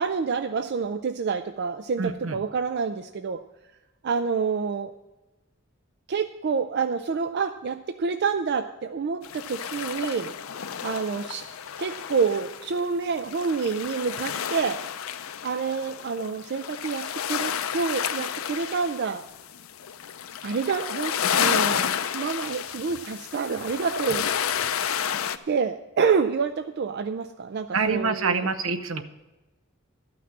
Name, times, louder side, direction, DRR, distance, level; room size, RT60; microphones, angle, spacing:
voice 1, 0.0-3.4 4.0-4.9 6.1-10.3 10.8-11.5 11.8-14.8 15.4-19.2 20.4-24.3 25.5-28.5, right 5 dB, 55° right, 9 dB, 0.4 m, -28 dB
voice 2, 2.0-2.4 27.7-29.0, right 4 dB, 75° right, 9 dB, 0.9 m, -26 dB
sound 1, 9.2-25.4, left 8 dB, 90° left, 0.5 m, -31 dB
12.5 x 5.9 x 7.3 m, 1.1 s
head